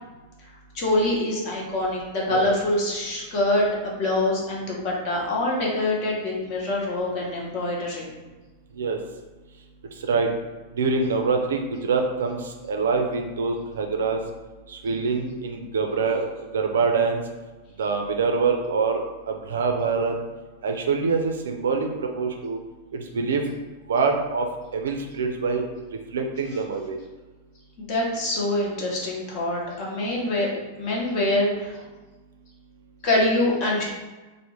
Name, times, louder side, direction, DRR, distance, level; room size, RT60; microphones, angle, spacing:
voice 1, 0.7-8.1 27.8-30.5 30.8-31.8 33.0-33.8, left 1 dB, 45° left, -3 dB, 1.0 m, -25 dB
voice 2, 10.7-14.2 14.7-17.2 17.8-20.1 20.6-22.6 22.9-23.4 23.9-25.6 26.1-27.0, right 4 dB, 65° right, 3 dB, 0.4 m, -25 dB
3.4 x 2.1 x 3.0 m, 1.2 s
figure-of-eight pair, 95°, 0 cm